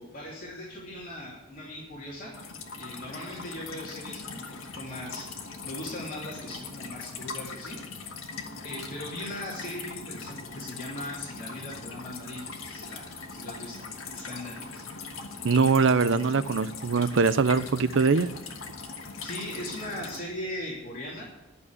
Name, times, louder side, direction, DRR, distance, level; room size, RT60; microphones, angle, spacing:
voice 1, 0.0-2.4 2.8-4.4 4.8-5.3 5.6-7.8 8.6-13.8 14.1-14.8 19.2-21.2, left 1 dB, 45° left, -5 dB, 3.1 m, -39 dB
sound 1, 2.3-20.2, left 4 dB, 80° left, 1.7 m, -41 dB
voice 2, 15.4-18.3, right 4 dB, 65° right, 15 dB, 0.6 m, -22 dB
12.0 x 7.0 x 9.9 m, 0.98 s
head